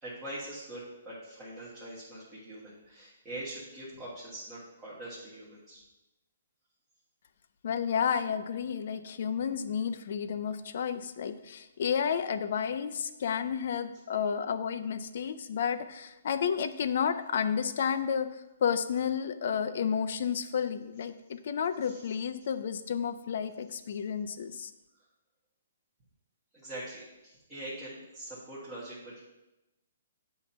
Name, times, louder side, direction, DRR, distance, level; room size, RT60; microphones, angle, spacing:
voice 1, 0.0-5.8 21.8-22.0 26.5-29.2, right 1 dB, 10° right, -10 dB, 1.4 m, -43 dB
voice 2, 7.6-18.3 18.6-24.7, left 7 dB, 55° left, 10 dB, 0.4 m, -31 dB
8.3 x 2.9 x 5.5 m, 0.99 s
hypercardioid pair, 165°, 0 cm